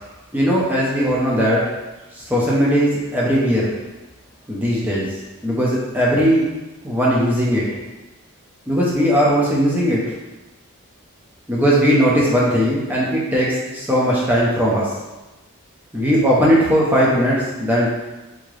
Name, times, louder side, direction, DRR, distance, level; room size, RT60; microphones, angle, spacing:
voice 1, 0.3-1.7 2.1-3.7 4.5-5.1 5.4-6.5 6.8-7.7 8.7-10.0 11.5-14.9 15.9-17.9, equal, 10° right, -6 dB, 0.7 m, -18 dB
3.6 x 2.9 x 3.2 m, 1.1 s
head